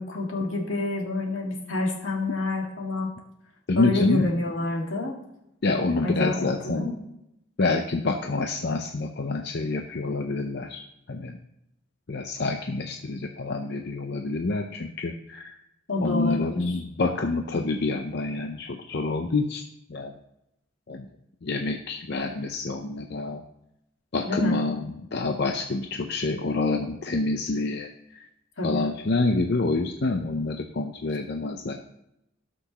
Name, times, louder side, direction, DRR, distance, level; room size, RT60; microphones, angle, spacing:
voice 1, 0.0-3.1 3.8-5.1 6.0-6.9 15.9-16.8 24.2-24.6 28.6-28.9, left 2 dB, 80° left, -1 dB, 2.2 m, -28 dB
voice 2, 3.7-4.3 5.6-6.9 7.6-10.8 11.1-11.4 12.1-15.6 16.0-19.6 19.9-20.1 20.9-21.1 21.4-23.4 24.1-28.2 28.6-31.7, left 3 dB, 60° left, 3 dB, 0.7 m, -27 dB
18.0 x 6.1 x 3.0 m, 0.84 s
head